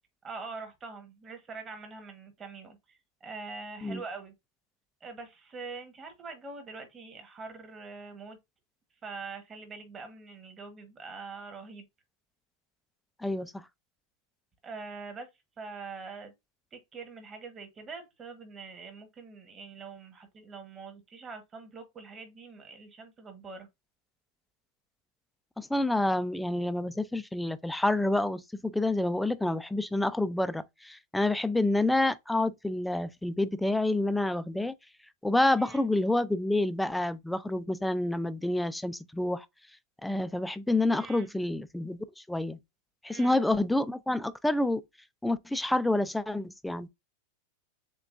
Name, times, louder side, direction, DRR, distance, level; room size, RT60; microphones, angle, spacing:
voice 1, 0.2-4.3 5.0-8.4 9.0-11.9 14.6-15.3 15.6-16.3 16.7-23.7 35.6-35.8 41.0-41.3 43.1-43.4, right 4 dB, 20° right, 1.2 m, -44 dB
voice 2, 13.2-13.6 25.6-34.7 35.2-39.5 40.0-42.6 43.0-44.8 45.2-46.9, left 2 dB, 5° left, 0.3 m, -28 dB
6.8 x 2.3 x 2.5 m
supercardioid pair, 150°, 0 cm